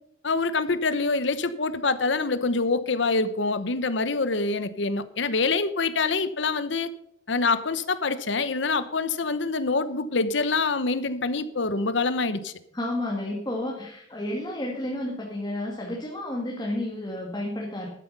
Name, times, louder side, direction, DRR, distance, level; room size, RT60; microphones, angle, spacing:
voice 1, 0.2-6.9 7.3-12.5, left 3 dB, 65° left, 13 dB, 0.9 m, -25 dB
voice 2, 12.7-17.9, left 1 dB, 20° left, -2 dB, 2.0 m, -31 dB
12.0 x 8.4 x 5.5 m, 0.74 s
head